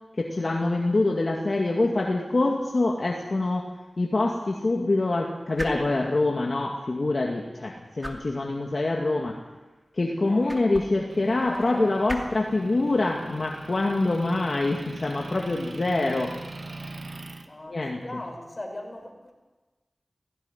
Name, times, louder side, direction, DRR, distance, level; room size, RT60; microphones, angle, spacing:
voice 1, 0.2-3.7 4.0-9.4 9.9-16.3 17.7-18.2, left 2 dB, 55° left, -1 dB, 2.2 m, -25 dB
sound 1, 2.5-16.1, equal, 10° right, 2.6 m, -45 dB
Motor vehicle (road) / Engine, 11.1-17.5, right 2 dB, 65° right, 1.8 m, -41 dB
voice 2, 11.4-11.9 17.4-19.3, left 1 dB, 30° left, 1 dB, 5.9 m, -38 dB
17.0 x 16.5 x 9.9 m, 1.2 s
wide cardioid pair, 75°, 0 cm